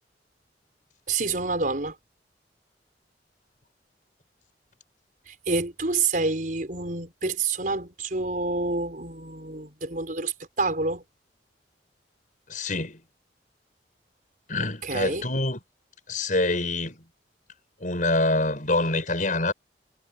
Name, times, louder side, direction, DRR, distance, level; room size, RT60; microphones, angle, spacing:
voice 1, 1.1-1.9 5.3-11.0 14.8-15.3, right 3 dB, 50° right, 5.0 m, -28 dB
voice 2, 12.5-13.0 14.5-15.6 16.1-17.0 17.8-19.5, left 2 dB, 50° left, 6.5 m, -25 dB
head